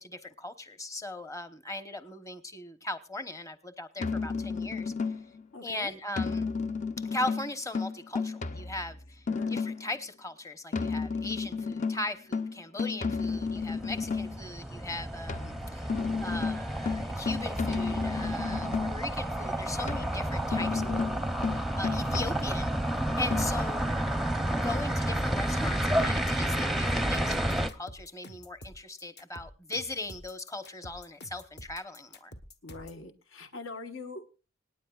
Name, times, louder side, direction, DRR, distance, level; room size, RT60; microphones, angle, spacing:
voice 1, 0.0-4.9 5.6-6.5 7.0-15.9 16.2-22.7 23.2-23.9 24.5-32.3, left 2 dB, 15° left, 11 dB, 1.0 m, -39 dB
sound 1, 4.0-5.4 6.2-10.0 10.7-14.4 15.3-19.1 19.9-22.8 23.3-23.5, left 4 dB, 40° left, 0.6 m, -32 dB
voice 2, 5.5-5.9 9.3-9.6 20.8-21.1 32.6-34.3, left 2 dB, 75° left, 7 dB, 1.3 m, -43 dB
sound 2, 13.2-27.7, right 1 dB, ahead, 0.7 m, -31 dB
sound 3, 27.1-33.0, left 1 dB, 55° left, 1.3 m, -48 dB
26.0 x 10.0 x 2.4 m, 0.32 s
head